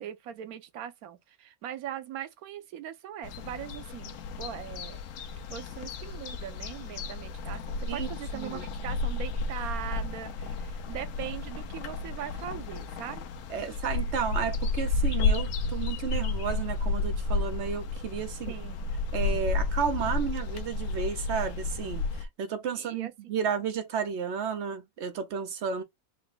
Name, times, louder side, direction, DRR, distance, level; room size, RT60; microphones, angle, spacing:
voice 1, 0.0-5.0 5.5-13.3 13.6-13.7 18.5-19.0 22.7-23.4, right 10 dB, 85° right, 1.1 m, -40 dB
sound 1, 3.2-22.3, left 3 dB, 70° left, 1.0 m, -32 dB
voice 2, 13.5-18.5 19.1-25.8, right 6 dB, 60° right, 0.9 m, -32 dB
4.1 x 2.2 x 3.8 m
omnidirectional pair, 1.5 m